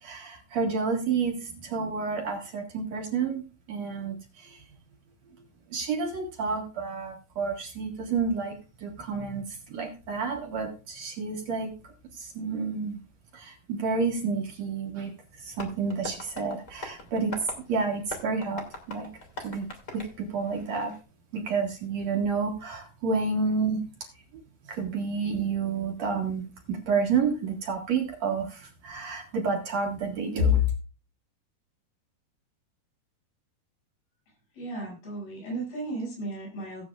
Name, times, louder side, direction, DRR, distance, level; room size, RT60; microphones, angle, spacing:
voice 1, 0.0-3.4 3.7-4.6 5.7-8.5 8.8-11.7 12.1-13.0 13.3-15.1 15.4-17.3 17.7-19.1 19.4-19.7 19.9-20.9 21.3-23.8 24.7-30.6, right 4 dB, 55° right, 1 dB, 2.6 m, -29 dB
Tap, 15.5-21.0, left 1 dB, 25° left, 2.0 m, -42 dB
voice 2, 34.5-36.8, right 2 dB, 85° left, -3 dB, 8.3 m, -35 dB
17.0 x 8.5 x 2.4 m, 0.33 s
omnidirectional pair, 4.4 m